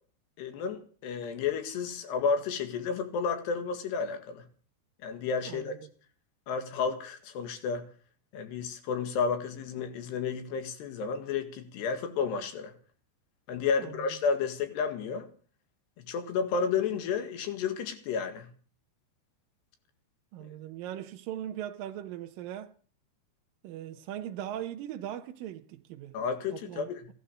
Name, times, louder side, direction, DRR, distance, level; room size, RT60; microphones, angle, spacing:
voice 1, 0.4-4.4 5.0-5.7 6.5-7.9 8.3-12.7 13.5-15.3 16.0-18.5 20.4-20.5 26.1-27.0, left 5 dB, 70° left, 3.8 m, -31 dB
voice 2, 5.5-5.9 13.8-14.1 20.3-22.7 23.6-26.1 26.5-27.1, right 11 dB, 75° right, 2.1 m, -39 dB
16.5 x 12.0 x 6.6 m
omnidirectional pair, 5.2 m